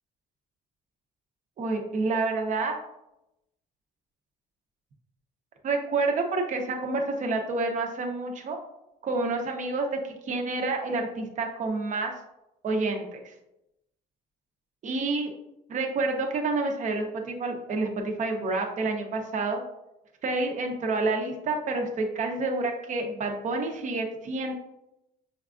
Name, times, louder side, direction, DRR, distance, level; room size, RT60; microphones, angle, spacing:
voice 1, 1.6-2.7 5.6-8.6 9.0-12.1 12.6-13.2 14.8-15.3 15.7-19.6 20.2-24.5, right 3 dB, 45° right, 2 dB, 0.8 m, -28 dB
6.2 x 2.4 x 2.5 m, 0.87 s
cardioid pair, 110°, 17 cm